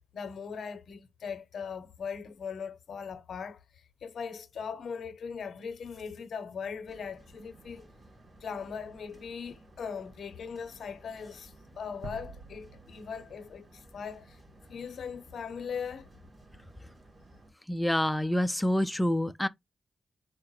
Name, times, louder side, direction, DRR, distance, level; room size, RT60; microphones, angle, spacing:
voice 1, 0.1-7.9 8.4-14.4 14.7-16.1, left 6 dB, 75° left, 0.7 m, -40 dB
sound 1, 6.9-17.5, right 2 dB, 45° right, 3.1 m, -56 dB
sound 2, 12.0-15.0, right 3 dB, 90° right, 0.8 m, -49 dB
voice 2, 17.7-19.5, left 1 dB, 5° left, 0.4 m, -27 dB
4.6 x 2.1 x 4.7 m
cardioid pair, 85°, 0 cm